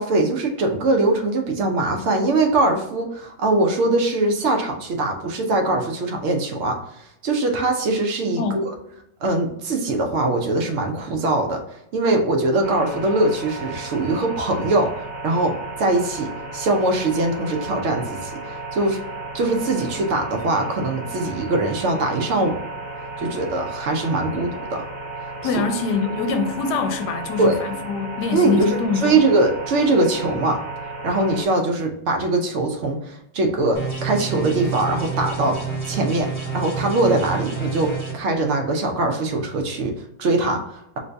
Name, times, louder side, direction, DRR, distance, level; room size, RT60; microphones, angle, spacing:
voice 1, 0.0-8.7 9.2-11.6 11.9-15.5 15.8-19.0 19.3-22.6 23.2-24.8 27.4-27.6 28.3-30.6 31.0-35.6 35.9-36.3 36.5-41.0, right 2 dB, 80° right, 0.6 m, -22 dB
sound 1, 12.6-31.4, right 2 dB, 30° right, 1.2 m, -34 dB
voice 2, 25.4-29.2, left 5 dB, 75° left, 1.1 m, -24 dB
sound 2, 33.7-38.1, right 4 dB, 30° left, 0.5 m, -28 dB
2.9 x 2.7 x 3.2 m
omnidirectional pair, 1.8 m